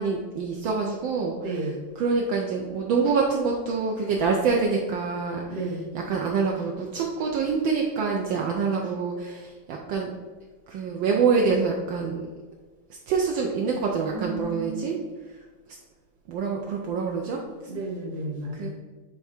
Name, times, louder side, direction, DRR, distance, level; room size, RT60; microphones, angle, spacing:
voice 1, 0.0-1.4 2.0-5.4 5.9-10.1 10.7-12.3 13.1-15.0 16.3-17.4 18.6-18.7, right 5 dB, 75° right, -1 dB, 1.4 m, -26 dB
voice 2, 1.4-1.8 5.5-5.9 14.1-14.9 17.7-18.7, right 2 dB, 50° right, 0 dB, 1.7 m, -32 dB
8.0 x 3.5 x 4.3 m, 1.3 s
omnidirectional pair, 2.2 m